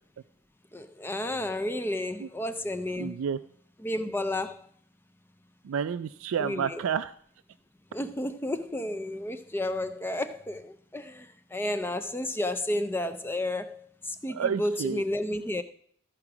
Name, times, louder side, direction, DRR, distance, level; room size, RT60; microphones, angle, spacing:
voice 1, 0.7-3.2 3.8-4.6 6.4-6.8 7.9-15.6, left 1 dB, 10° left, 10 dB, 0.4 m, -32 dB
voice 2, 3.0-3.4 5.6-7.1 14.3-15.0, right 7 dB, 75° right, 10 dB, 0.3 m, -30 dB
14.0 x 4.9 x 5.9 m, 0.62 s
head